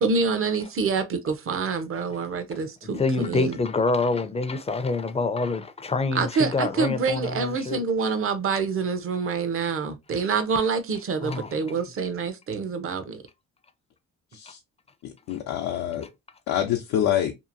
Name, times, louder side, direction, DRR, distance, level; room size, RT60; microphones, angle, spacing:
voice 1, 0.0-3.6 6.1-13.2, right 5 dB, 45° right, 0.7 m, -26 dB
voice 2, 3.0-7.8 11.2-11.5, left 3 dB, 20° left, 0.4 m, -26 dB
voice 3, 15.0-16.1 16.5-17.3, left 11 dB, 90° left, 0.6 m, -26 dB
2.8 x 2.5 x 2.5 m
cardioid pair, 90°, 30 cm